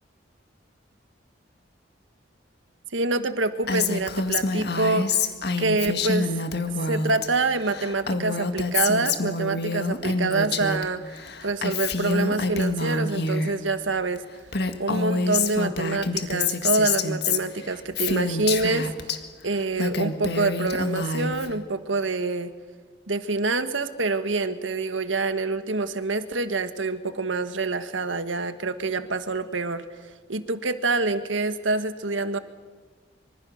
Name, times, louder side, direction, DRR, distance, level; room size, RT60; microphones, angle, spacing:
voice 1, 2.9-5.2 5.6-6.3 6.8-14.2 14.8-18.9 19.4-22.5 23.1-29.8 30.3-32.4, right 3 dB, 85° right, 10 dB, 1.6 m, -26 dB
Female speech woman speaking, 3.7-7.3 7.5-10.9 11.1-13.5 14.2-14.3 14.5-19.2 19.6-21.5, left 4 dB, 55° left, 1.9 m, -27 dB
25.5 x 25.0 x 6.5 m, 1.5 s
head